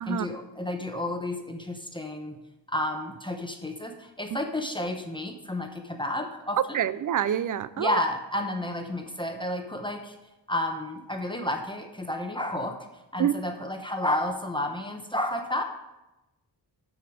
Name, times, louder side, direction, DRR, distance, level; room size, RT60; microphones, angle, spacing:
voice 1, 0.1-2.4 2.7-6.9 7.8-10.2 10.5-12.8 13.1-15.6, left 1 dB, 10° left, 4 dB, 0.9 m, -31 dB
voice 2, 6.7-8.0 13.2-13.3, right 10 dB, 50° right, 17 dB, 0.4 m, -26 dB
13.0 x 5.1 x 4.9 m, 0.98 s
wide cardioid pair, 105°, 43 cm